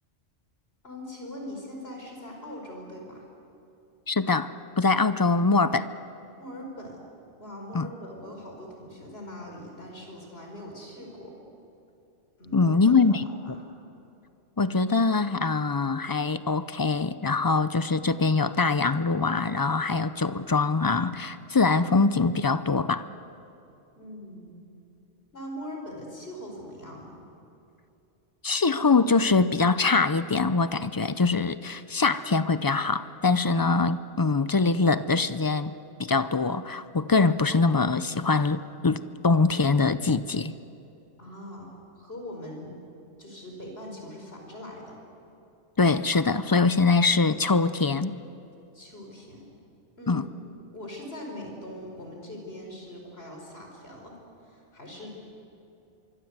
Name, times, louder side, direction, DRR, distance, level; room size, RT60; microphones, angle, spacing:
voice 1, 0.8-3.3 6.4-7.0 7.4-11.3 12.4-13.6 24.0-24.6 25.3-27.2 41.2-42.8 43.2-45.0 48.7-49.5 50.0-50.3 50.7-54.2 54.4-55.1, left 1 dB, 55° left, 1 dB, 5.2 m, -41 dB
voice 2, 4.1-4.5 4.8-5.9 7.7-7.9 12.5-13.2 14.6-23.0 28.4-35.7 36.0-40.5 45.8-48.2 50.1-50.2, left 4 dB, 35° left, 13 dB, 0.3 m, -23 dB
24.5 x 24.0 x 8.1 m, 2.7 s
omnidirectional pair, 1.2 m